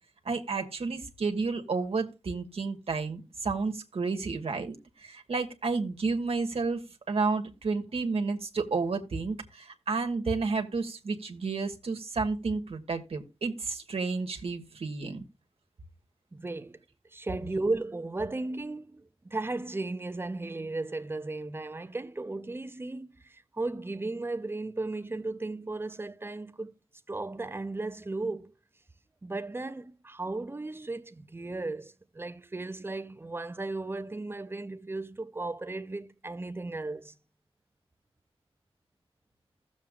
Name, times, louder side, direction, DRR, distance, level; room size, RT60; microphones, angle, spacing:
voice 1, 0.2-15.2, right 4 dB, 65° right, 1.4 m, -31 dB
voice 2, 16.3-16.8 17.1-26.7 27.1-28.5 29.2-37.1, right 2 dB, 20° right, 0.7 m, -35 dB
16.5 x 7.2 x 2.4 m
wide cardioid pair, 120°, 11 cm